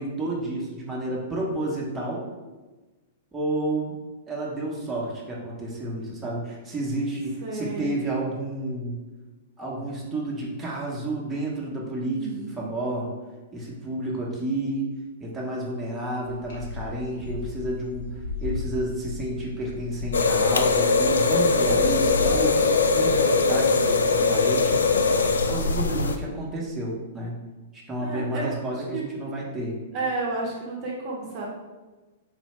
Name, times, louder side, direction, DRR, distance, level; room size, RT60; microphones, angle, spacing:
voice 1, 0.0-2.2 3.3-3.9 4.3-9.0 9.6-13.1 13.5-14.9 15.2-22.6 22.9-24.7 25.5-27.3 27.7-29.8, right 1 dB, 15° right, -5 dB, 1.1 m, -30 dB
voice 2, 7.4-7.9 12.1-12.7 28.0-28.4 28.7-29.0 29.9-31.5, right 3 dB, 40° right, -3 dB, 0.9 m, -32 dB
sound 1, 16.2-23.3, left 3 dB, 55° left, 1.1 m, -36 dB
sound 2, 20.1-26.2, left 4 dB, 75° left, 0.3 m, -21 dB
4.2 x 2.6 x 3.3 m, 1.2 s
figure-of-eight pair, 105°, 0 cm